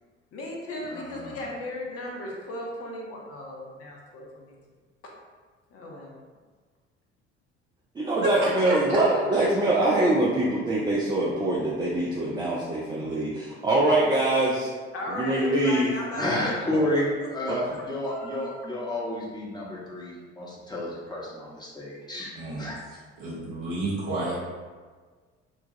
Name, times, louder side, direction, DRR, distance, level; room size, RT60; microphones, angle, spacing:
voice 1, 0.3-4.5 5.7-6.2 14.9-18.7, left 1 dB, 40° left, -1 dB, 0.6 m, -37 dB
voice 2, 0.8-1.4 16.2-22.3 22.6-22.8, left 1 dB, 10° left, -6 dB, 0.9 m, -30 dB
voice 3, 7.9-14.7 15.1-15.9 17.5-17.6, right 2 dB, 15° right, -5 dB, 0.3 m, -24 dB
voice 4, 8.7-9.0 22.4-22.6 23.2-24.4, right 2 dB, 55° right, -7 dB, 1.1 m, -30 dB
3.0 x 2.2 x 2.6 m, 1.5 s
figure-of-eight pair, 55°, 35 cm